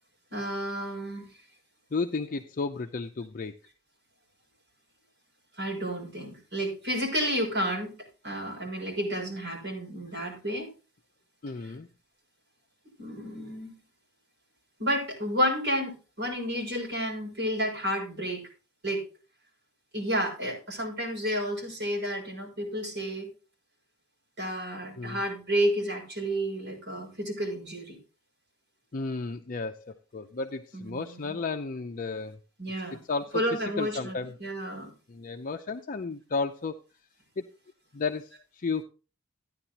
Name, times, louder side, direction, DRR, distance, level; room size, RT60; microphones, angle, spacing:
voice 1, 0.3-1.2 5.6-10.7 11.6-11.7 13.0-13.7 14.8-18.5 18.8-19.0 19.9-23.3 24.4-28.0 30.7-31.4 32.6-33.0 33.3-34.9, equal, 55° right, -1 dB, 6.1 m, -31 dB
voice 2, 1.9-3.5 11.4-11.9 25.0-25.2 28.9-32.4 33.1-33.4 33.8-34.3 35.1-36.8 37.4-37.5 37.9-38.8, left 4 dB, 40° left, 5 dB, 0.5 m, -33 dB
14.5 x 10.0 x 2.8 m, 0.33 s
head